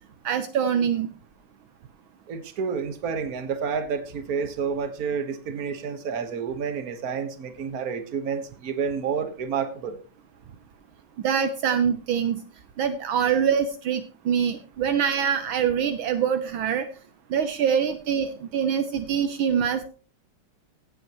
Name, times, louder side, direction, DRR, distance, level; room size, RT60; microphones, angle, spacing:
voice 1, 0.2-1.1 11.2-12.4 12.8-16.9 17.3-19.9, right 8 dB, 70° right, 9 dB, 1.6 m, -24 dB
voice 2, 2.3-10.0, right 6 dB, 45° right, 8 dB, 1.7 m, -29 dB
16.5 x 9.0 x 3.0 m, 0.37 s
omnidirectional pair, 2.4 m